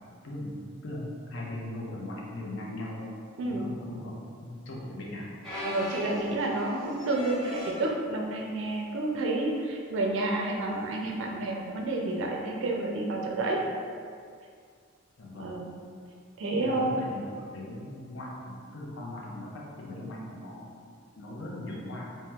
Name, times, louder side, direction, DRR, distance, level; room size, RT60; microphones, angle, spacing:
voice 1, 0.2-0.5 0.8-3.1 3.5-5.3 15.2-15.6 16.4-20.7 21.1-22.0, left 1 dB, 65° left, -4 dB, 0.6 m, -39 dB
sound 1, 5.4-7.9 8.6-8.9 9.2-9.3 10.3-10.5 12.1-12.2, left 1 dB, 5° left, 1.2 m, -39 dB
voice 2, 5.6-13.6 15.4-15.7 16.4-16.9, right 2 dB, 65° right, 0 dB, 0.4 m, -30 dB
2.8 x 2.1 x 3.3 m, 2.2 s
head